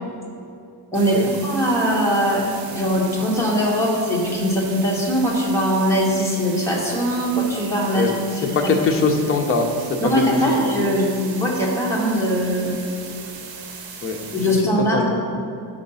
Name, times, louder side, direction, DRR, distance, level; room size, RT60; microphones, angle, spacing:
voice 1, 0.9-8.1 8.4-8.7 10.0-12.7 14.3-15.2, equal, 5° left, -4 dB, 0.9 m, -21 dB
sound 1, 0.9-14.6, right 6 dB, 85° right, 0.9 m, -38 dB
voice 2, 8.5-9.7 10.5-10.6 14.0-14.5 14.9-15.2, left 4 dB, 30° left, 2 dB, 0.5 m, -21 dB
5.7 x 5.0 x 5.4 m, 2.6 s
cardioid pair, 175°, 43 cm